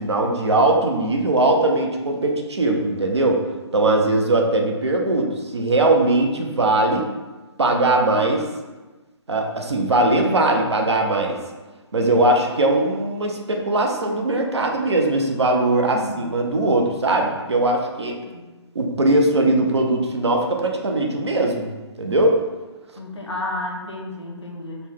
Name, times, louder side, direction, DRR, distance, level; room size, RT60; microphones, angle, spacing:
voice 1, 0.0-3.4 3.7-7.1 7.6-8.4 9.3-11.4 11.9-18.2 18.7-21.7 22.0-22.4, right 2 dB, 65° right, 2 dB, 0.6 m, -20 dB
voice 2, 15.9-16.3 18.2-18.5 23.0-24.9, left 1 dB, 70° left, 1 dB, 0.7 m, -32 dB
4.1 x 2.2 x 3.4 m, 1.2 s
figure-of-eight pair, 135°, 15 cm